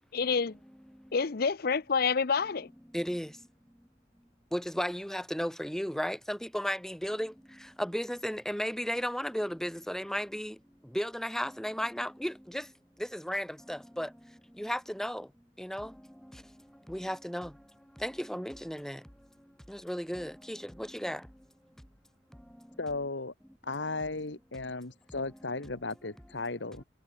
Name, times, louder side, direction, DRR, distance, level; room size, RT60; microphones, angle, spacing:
voice 1, 0.1-0.6 1.1-2.7, left 5 dB, 55° left, 0.7 m, -28 dB
voice 2, 2.9-3.3 4.5-7.3 7.8-10.5 10.9-12.6 13.1-14.1 14.6-15.2 15.6-15.9 16.9-17.5 18.0-19.0 19.7-21.2, equal, 5° left, 3.8 m, -34 dB
voice 3, 22.8-23.3 23.6-26.8, left 3 dB, 80° left, 1.9 m, -35 dB
head